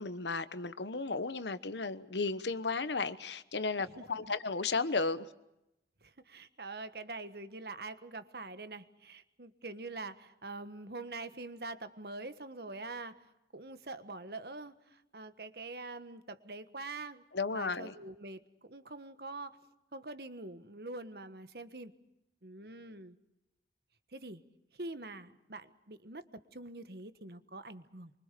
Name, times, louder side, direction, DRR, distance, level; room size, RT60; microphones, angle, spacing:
voice 1, 0.0-5.3 17.3-17.9, left 4 dB, 80° left, 1.1 m, -34 dB
voice 2, 3.8-4.3 6.0-17.2 17.5-19.6 19.9-21.9 22.4-23.2 24.1-24.4 24.7-28.1, right 2 dB, 60° right, 1.5 m, -45 dB
25.0 x 24.0 x 6.8 m
head